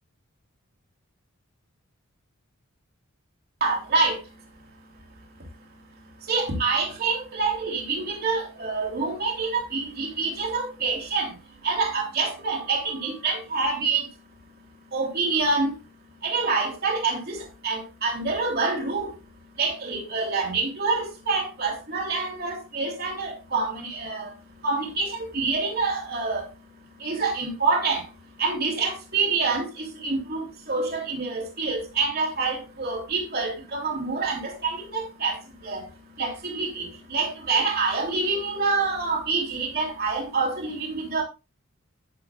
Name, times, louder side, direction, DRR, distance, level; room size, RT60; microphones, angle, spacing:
voice 1, 3.6-4.3 6.2-14.1 14.9-15.8 16.2-19.1 19.6-24.3 24.6-26.5 27.0-28.1 28.4-35.9 36.2-41.2, right 4 dB, 45° right, 3.2 m, -27 dB
10.5 x 9.5 x 2.4 m
head